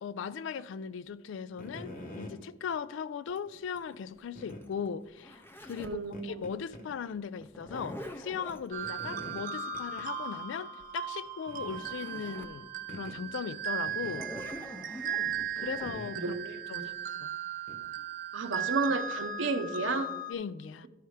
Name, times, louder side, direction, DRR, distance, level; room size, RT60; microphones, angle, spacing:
voice 1, 0.0-14.3 15.6-16.4 16.7-17.0 17.2-17.3 20.3-20.9, left 6 dB, 80° left, 0.3 m, -38 dB
sound 1, 1.5-2.4 3.3-3.4 4.4-4.6 5.8-5.9 6.1-6.9 7.2-7.3 8.8-9.5 9.7-10.1 10.4-10.5 10.8-10.9 11.5-11.9 12.9-13.2 13.9-14.5 15.8-16.4 17.7-17.8, left 1 dB, 45° left, 1.0 m, -45 dB
Zipper (clothing), 3.4-6.1 7.4-8.7 11.3-11.4 11.6-12.6 13.1-13.2 13.9-15.9, equal, 10° left, 0.5 m, -45 dB
voice 2, 5.8-6.5 16.2-16.9 18.3-20.1, right 3 dB, 85° right, 0.7 m, -32 dB
sound 2, 8.7-20.3, right 6 dB, 45° right, 0.6 m, -37 dB
12.0 x 5.6 x 3.2 m
head